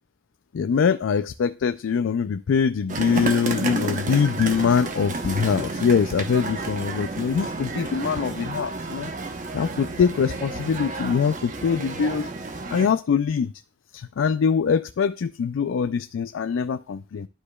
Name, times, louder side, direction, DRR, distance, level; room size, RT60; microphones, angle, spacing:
voice 1, 0.5-9.1 9.5-12.3 12.7-13.5 13.9-17.3, left 6 dB, 80° left, 11 dB, 0.4 m, -23 dB
sound 1, 2.9-12.9, right 3 dB, 45° right, 0.9 m, -31 dB
sound 2, 4.5-10.5, left 1 dB, 20° left, 1.4 m, -54 dB
11.5 x 5.0 x 2.3 m, 0.34 s
head